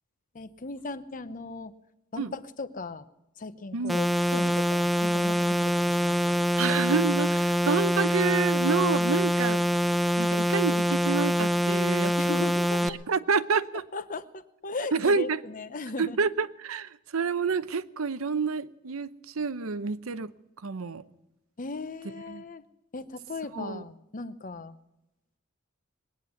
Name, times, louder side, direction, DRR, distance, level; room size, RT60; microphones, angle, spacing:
voice 1, 0.3-1.7 2.1-3.0 3.4-6.4 12.2-13.0 13.9-16.2 21.6-22.6 22.9-24.8, left 3 dB, 40° left, 0.8 m, -38 dB
sound 1, 3.9-12.9, equal, ahead, 0.5 m, -25 dB
voice 2, 6.5-9.6 10.2-12.5 12.8-13.8 14.9-15.4 16.0-20.3 20.6-21.0 22.3-22.4 23.5-23.8, right 5 dB, 85° right, 0.7 m, -28 dB
21.0 x 9.6 x 7.0 m
head